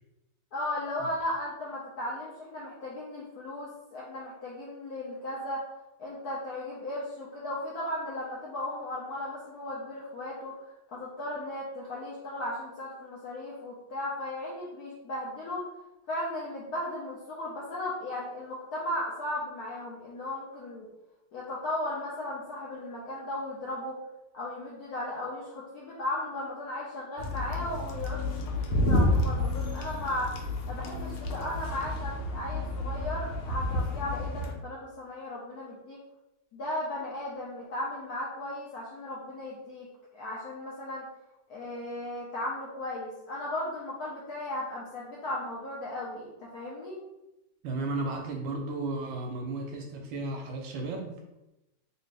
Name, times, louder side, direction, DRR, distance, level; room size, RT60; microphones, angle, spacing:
voice 1, 0.5-5.6 6.0-15.6 16.1-20.9 21.3-24.0 24.3-30.3 30.7-36.0 36.5-39.9 40.1-41.0 41.5-47.0, left 1 dB, 70° left, -6 dB, 0.9 m, -36 dB
sound 1, 27.2-34.5, left 1 dB, 90° left, 1.5 m, -30 dB
voice 2, 47.6-51.2, right 2 dB, 75° right, 2 dB, 1.2 m, -34 dB
3.4 x 2.7 x 3.2 m, 0.92 s
omnidirectional pair, 2.3 m